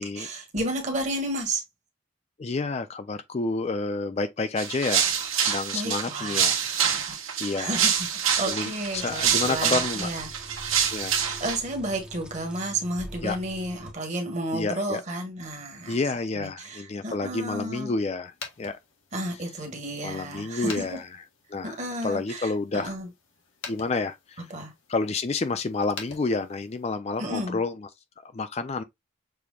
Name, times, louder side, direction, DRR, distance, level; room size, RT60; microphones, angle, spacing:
voice 1, 0.0-1.6 5.7-7.2 7.6-8.1 8.4-10.3 11.1-16.0 16.3-17.9 19.1-21.0 21.6-23.1 24.5-24.7 27.2-27.6, right 1 dB, 35° right, 1.5 m, -32 dB
voice 2, 2.4-5.1 5.4-6.6 7.4-7.9 8.5-10.1 10.9-11.2 13.2-13.4 14.5-15.0 15.9-18.8 20.0-21.1 21.5-21.8 22.0-23.0 23.7-24.5 24.9-27.9 28.3-28.8, left 3 dB, 30° left, 0.4 m, -29 dB
sound 1, 4.6-11.6, right 8 dB, 85° right, 1.2 m, -26 dB
sound 2, 8.9-13.9, equal, 5° right, 0.9 m, -44 dB
sound 3, 18.2-27.0, left 4 dB, 70° left, 1.4 m, -46 dB
6.8 x 3.0 x 2.3 m
head